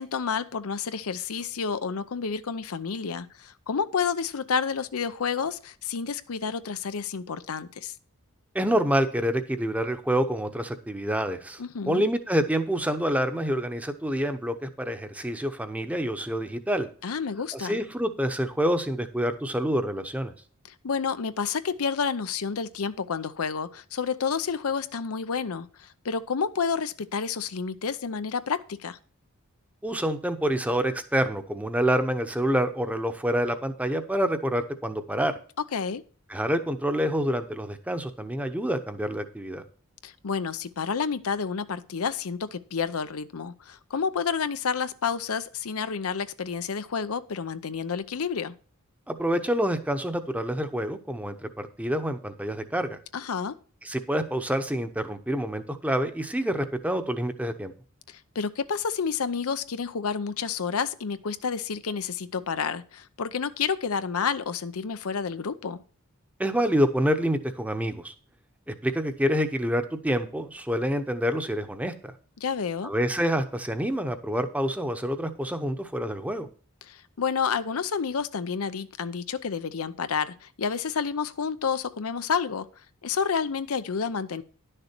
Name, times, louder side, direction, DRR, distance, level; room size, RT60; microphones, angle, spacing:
voice 1, 0.0-7.9 11.6-12.0 17.0-17.8 20.8-29.0 35.7-36.0 40.0-48.5 53.1-53.6 58.1-65.8 72.4-72.9 76.8-82.7 83.0-84.4, left 6 dB, 80° left, 0.6 m, -30 dB
voice 2, 8.5-11.6 11.9-16.9 17.5-20.3 29.8-35.4 36.3-39.6 49.1-53.0 53.8-57.7 66.4-68.1 68.7-72.1 72.8-76.5, equal, 5° right, 0.8 m, -27 dB
11.0 x 6.7 x 4.4 m
head